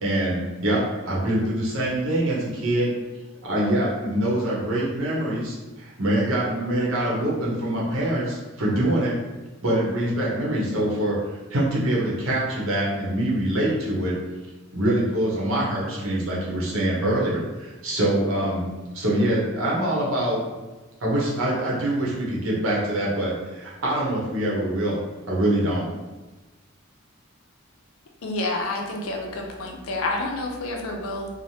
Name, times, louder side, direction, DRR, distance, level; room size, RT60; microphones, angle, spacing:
voice 1, 0.0-2.9 3.4-9.1 9.6-14.1 14.7-18.7 18.9-20.4 21.0-25.0 25.3-25.9, right 1 dB, 75° right, -5 dB, 0.8 m, -24 dB
voice 2, 28.2-31.3, left 2 dB, 80° left, 1 dB, 0.5 m, -29 dB
3.2 x 2.1 x 2.7 m, 1.2 s
head